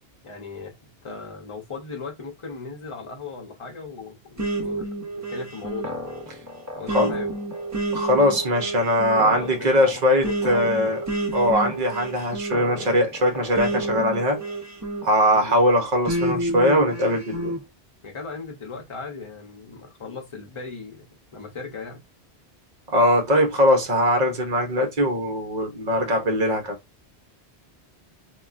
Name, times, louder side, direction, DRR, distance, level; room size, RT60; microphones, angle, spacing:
voice 1, 0.2-0.8 1.0-4.9 5.1-6.0 6.7-7.3 9.2-10.9 15.3-15.6 18.0-21.1 21.3-22.0, left 4 dB, 30° left, 0.7 m, -37 dB
sound 1, 4.4-15.4 16.1-17.6, right 1 dB, 20° right, 0.5 m, -30 dB
voice 2, 7.9-11.0 11.3-14.4 15.0-17.5 22.9-26.8, equal, 45° right, 0.9 m, -21 dB
3.5 x 2.3 x 2.4 m
omnidirectional pair, 1.1 m